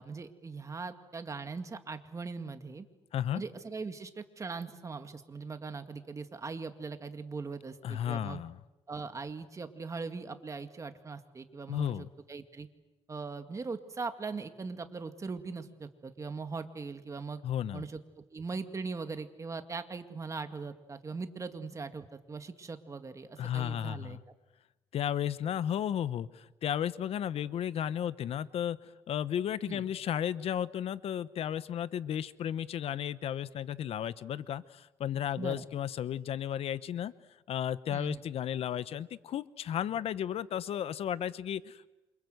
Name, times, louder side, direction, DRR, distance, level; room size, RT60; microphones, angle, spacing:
voice 1, 0.0-2.9 3.3-8.4 8.9-12.7 13.1-17.4 17.7-24.2 29.7-29.8 35.4-35.6 37.9-38.2, right 4 dB, 30° right, 8 dB, 2.1 m, -40 dB
voice 2, 3.1-3.4 7.8-8.6 11.7-12.1 17.4-17.9 23.4-24.2 24.9-37.1 37.5-41.9, left 10 dB, 70° left, 16 dB, 0.9 m, -34 dB
28.0 x 26.0 x 8.0 m, 1.0 s
cardioid pair, 110°, 11 cm